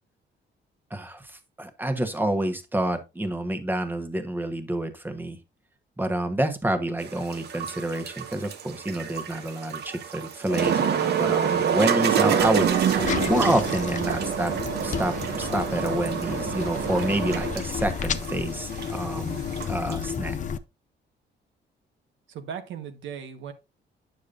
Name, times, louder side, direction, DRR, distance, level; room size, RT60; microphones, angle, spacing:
voice 1, 0.9-5.4 6.0-14.5 14.8-19.4 19.7-20.4, right 1 dB, 10° right, 1.0 m, -28 dB
sound 1, 7.0-20.1, right 8 dB, 60° right, 1.0 m, -27 dB
sound 2, 12.4-20.6, left 7 dB, 40° left, 0.5 m, -32 dB
voice 2, 22.3-23.5, right 7 dB, 75° right, 1.2 m, -37 dB
9.3 x 6.7 x 2.5 m
cardioid pair, 145°, 20 cm